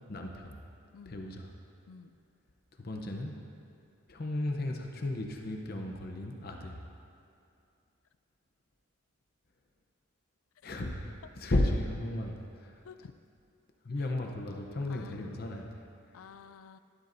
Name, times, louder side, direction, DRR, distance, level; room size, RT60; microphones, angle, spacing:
voice 1, 0.1-0.5 1.1-1.5 2.7-3.3 4.1-6.8 10.6-12.8 13.8-16.2, left 1 dB, 45° left, 2 dB, 0.7 m, -34 dB
voice 2, 1.9-2.2 10.6-10.8 12.8-13.1 14.0-14.1 14.9-15.4 16.1-16.8, left 6 dB, 90° left, 12 dB, 0.4 m, -51 dB
12.5 x 12.0 x 2.7 m, 2.5 s
head